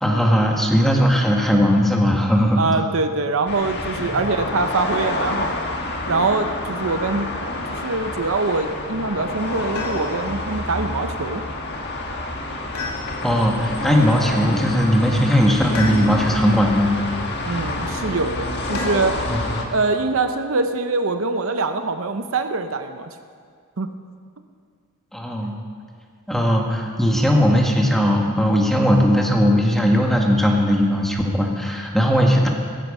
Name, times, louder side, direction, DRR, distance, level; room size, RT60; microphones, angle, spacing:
voice 1, 0.0-2.8 4.0-4.1 13.2-16.9 19.3-19.4 25.1-25.5 26.3-32.5, equal, ahead, 0 dB, 1.7 m, -18 dB
voice 2, 2.6-5.7 6.1-7.3 7.7-11.4 17.4-19.2 19.7-23.1 23.8-23.9, right 3 dB, 65° right, 8 dB, 0.7 m, -23 dB
sound 1, 3.5-19.6, left 2 dB, 50° left, 1.6 m, -28 dB
sound 2, 9.8-10.4 12.7-13.5 15.7-16.5 18.7-19.3 21.0-21.6, left 4 dB, 80° left, 2.5 m, -33 dB
16.5 x 14.0 x 5.5 m, 2.1 s
head